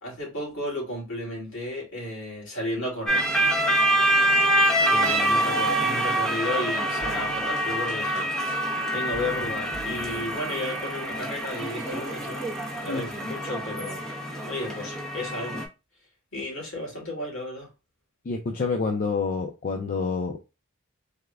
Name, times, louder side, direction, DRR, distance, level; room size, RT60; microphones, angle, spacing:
voice 1, 0.0-3.2 4.8-12.4 12.8-14.0 14.5-15.6 16.3-17.7, left 1 dB, 65° left, 2.0 m, -33 dB
sound 1, 3.1-15.7, right 1 dB, 5° left, 0.7 m, -26 dB
sound 2, 7.0-10.7, right 6 dB, 60° right, 0.5 m, -46 dB
voice 2, 18.3-20.4, left 4 dB, 40° left, 0.4 m, -27 dB
3.5 x 2.2 x 3.3 m
head